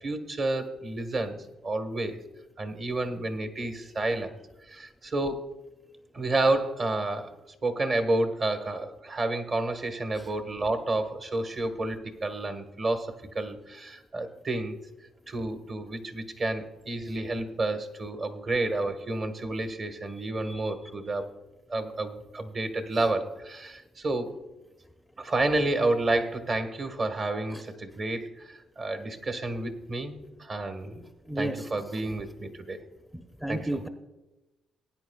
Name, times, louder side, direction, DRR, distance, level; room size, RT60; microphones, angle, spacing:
voice 1, 0.0-2.2 2.6-4.3 4.7-5.4 6.1-7.3 7.6-14.8 15.3-21.3 21.7-24.3 25.2-31.0 31.4-32.8 33.5-33.8, right 2 dB, 40° right, 7 dB, 1.3 m, -30 dB
voice 2, 31.3-31.7 33.4-33.9, right 1 dB, ahead, 6 dB, 0.6 m, -32 dB
19.0 x 9.5 x 2.3 m, 1.0 s
cardioid pair, 90°, 0 cm